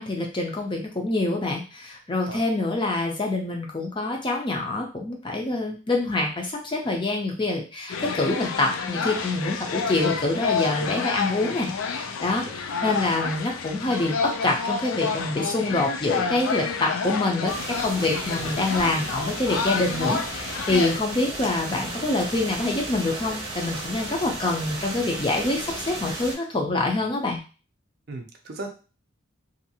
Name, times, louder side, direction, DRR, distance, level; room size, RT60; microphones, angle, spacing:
voice 1, 0.0-17.5 17.8-27.4, left 2 dB, 25° left, 1 dB, 0.5 m, -26 dB
sound 1, 7.9-21.0, left 5 dB, 80° left, 0.4 m, -29 dB
sound 2, 17.5-26.3, right 2 dB, 25° right, 0.8 m, -35 dB
voice 2, 28.1-28.7, right 2 dB, 50° right, 3 dB, 0.4 m, -37 dB
2.6 x 2.4 x 2.7 m, 0.35 s
head